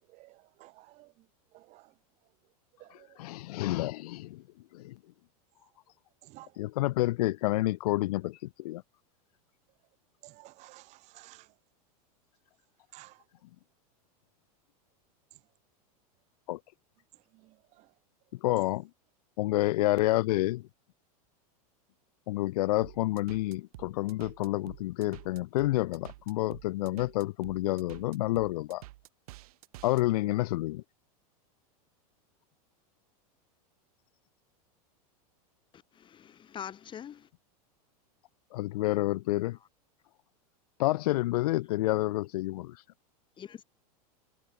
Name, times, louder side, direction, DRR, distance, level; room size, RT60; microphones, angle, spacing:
voice 1, 0.6-1.1 1.5-1.8 2.8-2.9 6.3-6.5 10.2-11.4 12.9-13.1, right 19 dB, 35° right, 0.5 m, -52 dB
voice 2, 2.9-4.4 4.7-5.0 6.6-8.8 16.5-16.6 18.3-18.9 19.4-20.7 22.3-28.8 29.8-30.8 38.5-39.6 40.8-42.8, left 17 dB, 75° left, 0.5 m, -29 dB
sound 1, 22.8-30.0, right 18 dB, 70° right, 4.7 m, -49 dB
voice 3, 35.7-37.3 43.4-43.6, left 9 dB, 25° left, 1.7 m, -44 dB
supercardioid pair, 130°, 20 cm